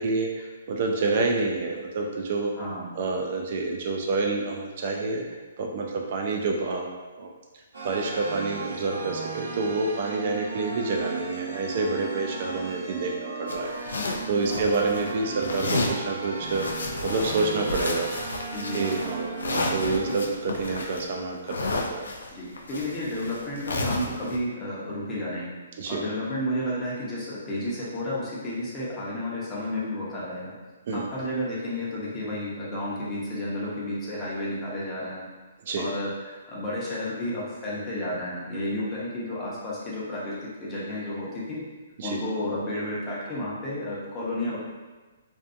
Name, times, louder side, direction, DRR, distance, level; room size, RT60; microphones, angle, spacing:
voice 1, 0.0-2.5 3.0-5.2 5.6-7.3 7.8-18.1 18.7-22.1 25.8-26.0 30.9-31.1 35.7-35.9 42.0-42.2, right 3 dB, 50° right, 1 dB, 0.3 m, -28 dB
voice 2, 2.6-2.9 14.5-14.7 18.5-18.8 22.3-25.5 25.9-30.5 30.9-35.3 35.7-41.6 42.0-44.6, left 1 dB, 20° left, -7 dB, 0.7 m, -32 dB
sound 1, 7.7-20.1, right 4 dB, 85° right, 0.8 m, -36 dB
sound 2, 13.5-15.1 15.4-16.0 16.4-24.4, left 2 dB, 90° left, 0.3 m, -32 dB
2.5 x 2.3 x 2.4 m, 1.2 s
hypercardioid pair, 150°, 0 cm